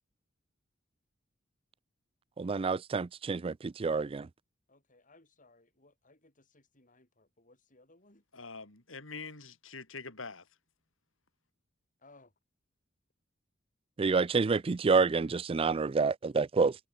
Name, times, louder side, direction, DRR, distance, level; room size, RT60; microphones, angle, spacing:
voice 1, 2.4-4.3 14.0-16.8, right 4 dB, 30° right, 0.4 m, -28 dB
voice 2, 4.7-8.2 12.0-12.3, left 2 dB, 40° left, 7.3 m, -62 dB
voice 3, 8.3-10.5, left 4 dB, 90° left, 4.4 m, -44 dB
head